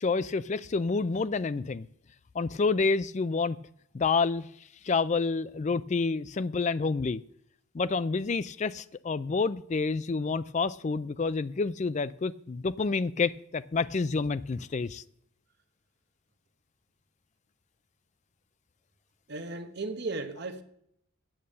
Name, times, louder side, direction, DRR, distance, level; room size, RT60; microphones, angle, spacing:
voice 1, 0.0-1.9 2.3-3.6 3.9-4.5 4.8-7.2 7.7-15.0, left 4 dB, 35° left, 0.3 m, -28 dB
voice 2, 19.3-20.6, right 3 dB, 50° right, 1.0 m, -35 dB
8.8 x 7.0 x 7.6 m
head